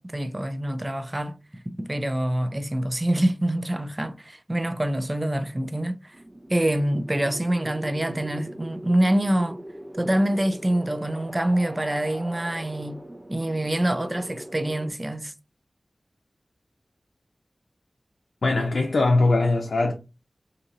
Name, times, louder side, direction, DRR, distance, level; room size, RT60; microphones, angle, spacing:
voice 1, 0.0-1.4 1.7-6.2 6.5-9.6 9.9-13.0 13.3-15.3, right 1 dB, 30° right, 0.4 m, -25 dB
sound 1, 6.1-14.9, right 1 dB, 45° right, 0.8 m, -41 dB
voice 2, 18.4-19.9, left 2 dB, 85° left, 0.5 m, -21 dB
2.7 x 2.5 x 4.0 m
cardioid pair, 45°, 0 cm